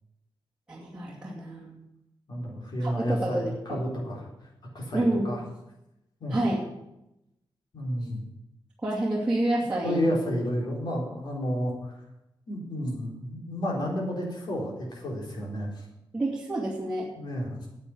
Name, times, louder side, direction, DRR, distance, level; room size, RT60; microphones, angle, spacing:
voice 1, 0.7-1.8 2.8-3.8 4.9-5.3 6.3-6.6 8.8-10.0 16.1-17.1, right 1 dB, 10° right, -8 dB, 2.5 m, -28 dB
voice 2, 2.3-4.3 4.7-5.4 6.2-6.4 7.7-8.2 9.8-12.0 12.5-15.7 17.2-17.7, equal, 55° left, -2 dB, 4.1 m, -31 dB
9.5 x 8.4 x 9.5 m, 0.88 s
wide cardioid pair, 170°, 9 cm